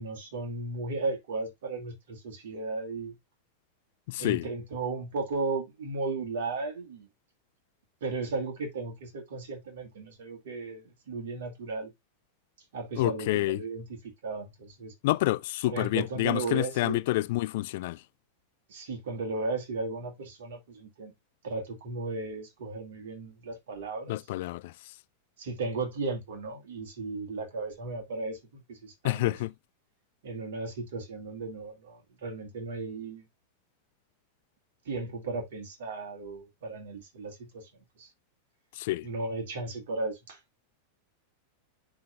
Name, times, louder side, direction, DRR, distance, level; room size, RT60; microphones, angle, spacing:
voice 1, 0.0-3.1 4.2-7.1 8.0-11.9 12.7-14.9 15.7-17.0 18.7-21.1 21.4-24.2 25.4-28.4 28.7-29.4 30.2-33.2 34.9-37.7 38.0-38.1 39.0-40.4, right 3 dB, 60° right, 2.4 m, -35 dB
voice 2, 4.1-4.4 13.0-13.6 15.0-18.0 24.1-24.9 29.0-29.5 38.7-39.1, left 18 dB, 50° left, 0.3 m, -28 dB
11.0 x 3.9 x 2.4 m
figure-of-eight pair, 90°, 0 cm